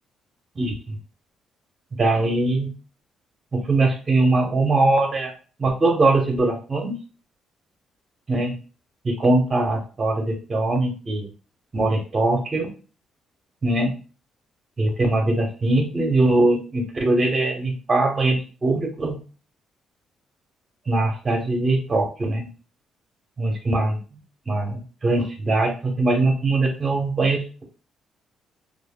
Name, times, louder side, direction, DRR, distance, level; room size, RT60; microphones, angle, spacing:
voice 1, 2.0-2.7 3.5-5.3 5.6-6.9 8.3-8.5 9.0-11.3 11.7-12.7 13.6-13.9 14.8-19.2 20.9-22.5 23.4-24.0 24.5-27.6, right 2 dB, 35° right, 3 dB, 1.1 m, -21 dB
3.2 x 2.6 x 2.3 m, 0.37 s
supercardioid pair, 60°, 0 cm